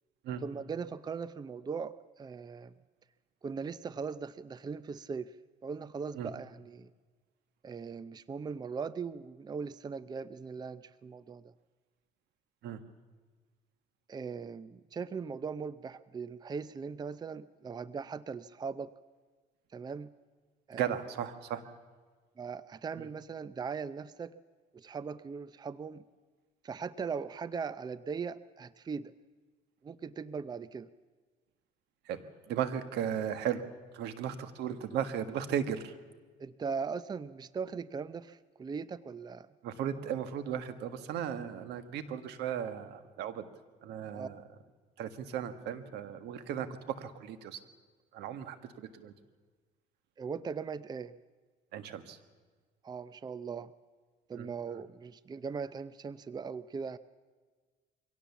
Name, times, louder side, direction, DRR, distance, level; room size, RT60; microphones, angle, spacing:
voice 1, 0.4-2.7 3.4-5.4 5.6-6.9 7.6-11.5 14.1-18.9 19.7-20.1 20.7-20.9 22.4-24.3 24.7-26.0 26.6-29.1 29.8-30.9 36.4-39.5 44.1-44.3 50.2-51.1 52.8-53.7 54.3-57.0, right 5 dB, 25° right, 16 dB, 0.6 m, -39 dB
voice 2, 20.7-21.6 23.0-23.1 32.0-33.6 33.9-36.0 39.6-43.5 43.8-44.4 45.0-47.6 48.1-49.1 51.7-52.2 54.3-54.5, right 9 dB, 80° right, 10 dB, 1.6 m, -36 dB
23.5 x 17.5 x 7.2 m, 1.4 s
cardioid pair, 110°, 17 cm